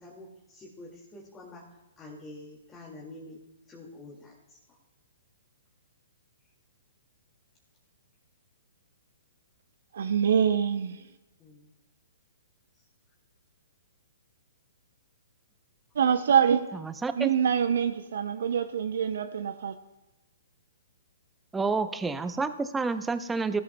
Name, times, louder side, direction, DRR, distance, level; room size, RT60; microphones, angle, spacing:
voice 1, 0.0-3.4 3.7-4.6 11.4-11.7 12.7-12.8, left 2 dB, 15° left, 2.1 m, -47 dB
voice 2, 9.9-11.0 16.0-16.6 17.1-19.7, right 8 dB, 65° right, 0.6 m, -25 dB
voice 3, 17.0-17.3 21.5-23.6, right 4 dB, 10° right, 0.6 m, -29 dB
17.0 x 13.5 x 2.2 m
hypercardioid pair, 125°, 0 cm